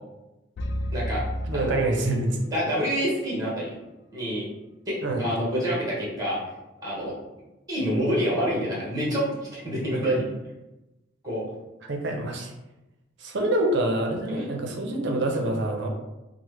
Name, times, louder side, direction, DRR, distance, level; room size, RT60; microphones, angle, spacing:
sound 1, 0.6-2.7, equal, 60° left, 0.3 m, -32 dB
voice 1, 1.5-2.4 5.0-5.2 11.9-12.5 13.2-15.9, right 1 dB, 65° right, 2 dB, 0.6 m, -26 dB
voice 2, 2.5-3.7 4.1-4.5 4.9-6.4 6.8-7.1 7.7-9.2 9.5-10.2 11.2-11.4 14.3-14.5, equal, 20° right, -6 dB, 1.2 m, -27 dB
3.1 x 2.1 x 3.1 m, 0.98 s
head